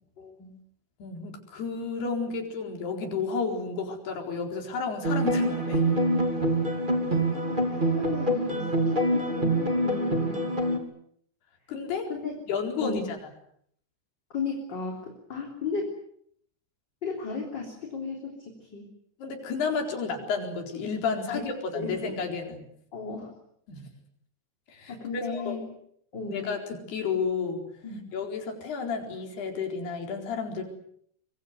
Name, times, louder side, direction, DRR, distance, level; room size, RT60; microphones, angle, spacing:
voice 1, 0.2-0.5 7.3-10.4 12.1-12.3 12.8-13.1 14.3-15.9 17.0-18.9 21.3-21.5 21.7-22.1 22.9-23.3 24.9-25.7 26.1-26.5 27.8-28.2, left 4 dB, 25° left, 1 dB, 4.0 m, -35 dB
voice 2, 1.0-5.8 11.7-12.1 12.5-13.2 19.2-22.6 23.7-23.9 24.7-25.6 26.3-27.7 28.1-30.6, left 5 dB, 70° left, 3 dB, 6.2 m, -31 dB
sound 1, 5.0-10.8, right 1 dB, 15° right, 2.3 m, -25 dB
25.0 x 23.5 x 8.2 m, 0.69 s
omnidirectional pair, 4.8 m